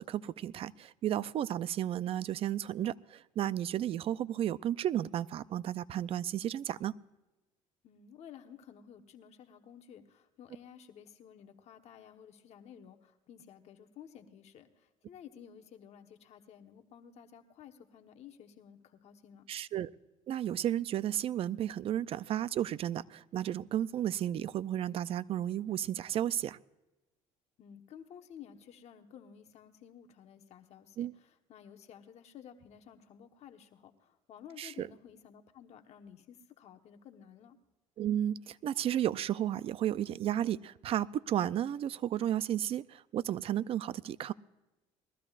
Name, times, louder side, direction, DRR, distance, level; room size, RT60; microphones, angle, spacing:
voice 1, 0.0-6.9 19.5-19.9 20.3-26.6 31.0-31.1 34.6-34.9 38.0-44.3, right 11 dB, 45° right, 17 dB, 0.4 m, -33 dB
voice 2, 7.8-19.5 27.6-37.6, left 8 dB, 55° left, 5 dB, 1.2 m, -54 dB
21.0 x 14.5 x 2.4 m, 1.1 s
cardioid pair, 110°, 13 cm